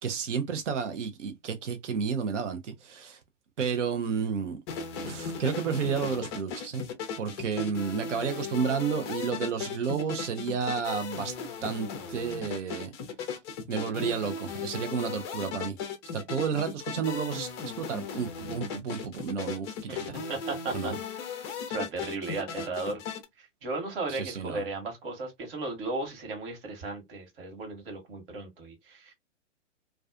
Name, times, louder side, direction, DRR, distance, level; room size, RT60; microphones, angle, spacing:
voice 1, 0.0-3.2 3.6-4.6 5.0-6.8 7.2-11.3 11.6-12.9 13.7-15.8 16.1-20.0 20.7-21.0 24.1-24.6, right 6 dB, 75° right, 0.7 m, -31 dB
sound 1, 4.7-23.2, left 6 dB, 25° left, 0.4 m, -37 dB
voice 2, 19.9-23.0 23.4-29.1, right 3 dB, 45° right, 1.3 m, -36 dB
2.4 x 2.3 x 2.3 m
hypercardioid pair, 120°, 37 cm